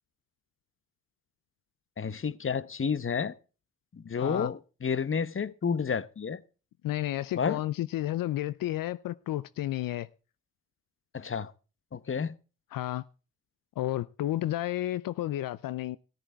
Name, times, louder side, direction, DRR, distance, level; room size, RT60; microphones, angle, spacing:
voice 1, 2.0-3.3 3.9-6.4 7.4-7.6 11.1-11.5 11.9-12.3, left 6 dB, 40° left, 1.0 m, -30 dB
voice 2, 4.2-4.5 6.8-10.1 12.7-13.0 13.8-16.0, left 14 dB, 80° left, 0.5 m, -31 dB
14.0 x 11.0 x 4.4 m
supercardioid pair, 45°, 33 cm